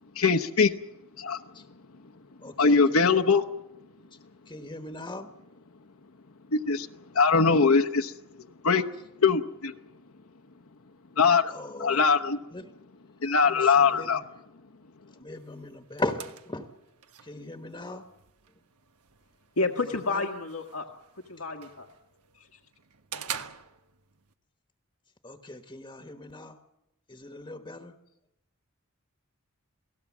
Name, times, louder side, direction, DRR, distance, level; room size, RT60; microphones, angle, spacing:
voice 1, 0.1-0.8 1.2-1.7 1.9-2.1 2.6-3.4 6.5-8.9 9.2-9.8 11.2-12.4 13.2-14.2, left 5 dB, 70° left, 0.9 m, -23 dB
voice 2, 2.4-3.4 4.5-5.3 11.5-12.0 12.5-12.7 13.4-14.2 15.1-16.7 17.2-18.0 20.1-20.2 25.2-26.6 27.1-27.9, left 2 dB, 20° left, 1.2 m, -38 dB
sound 1, 15.3-24.3, right 8 dB, 90° right, 1.3 m, -46 dB
voice 3, 19.6-20.9 21.1-21.9 22.3-22.6, left 3 dB, 85° left, 1.6 m, -31 dB
28.5 x 18.5 x 7.3 m
head